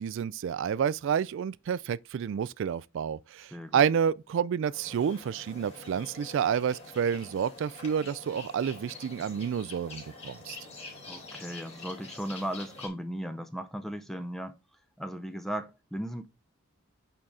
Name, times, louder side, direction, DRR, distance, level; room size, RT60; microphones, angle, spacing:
voice 1, 0.0-10.6, right 7 dB, 60° right, 0.3 m, -29 dB
voice 2, 3.5-3.8 11.1-14.6 15.0-16.3, equal, ahead, 0.5 m, -36 dB
sound 1, 4.7-12.9, left 3 dB, 30° left, 3.4 m, -46 dB
8.8 x 3.9 x 3.6 m
head